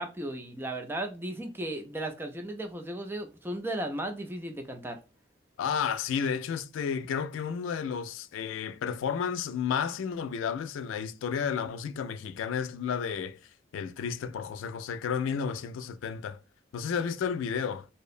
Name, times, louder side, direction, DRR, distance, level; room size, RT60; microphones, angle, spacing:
voice 1, 0.0-5.0, right 1 dB, 10° right, 0.3 m, -35 dB
voice 2, 5.6-13.4 13.7-16.4 16.7-17.9, left 7 dB, 85° left, 0.3 m, -32 dB
2.7 x 2.0 x 2.4 m
head